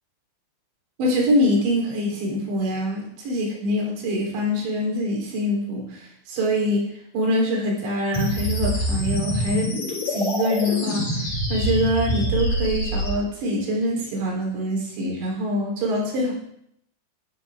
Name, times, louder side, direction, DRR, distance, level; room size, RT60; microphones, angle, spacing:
voice 1, 1.0-6.8 7.1-9.7 10.1-16.3, equal, 85° right, -2 dB, 5.9 m, -24 dB
sound 1, 8.1-13.1, equal, 40° left, 7.1 m, -25 dB
14.0 x 14.0 x 3.6 m, 0.73 s
omnidirectional pair, 5.0 m